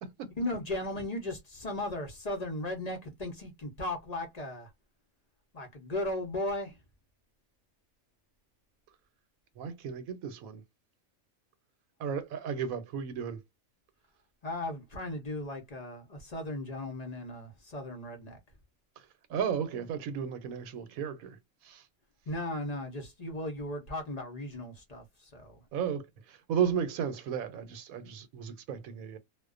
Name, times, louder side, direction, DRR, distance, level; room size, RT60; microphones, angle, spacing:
voice 1, 0.4-4.7 5.5-6.8 14.4-18.4 22.3-25.6, left 1 dB, 40° left, 0.6 m, -36 dB
voice 2, 9.6-10.6 12.0-13.4 19.0-21.9 25.7-29.2, right 7 dB, 85° right, 1.1 m, -34 dB
2.4 x 2.1 x 2.3 m
omnidirectional pair, 1.4 m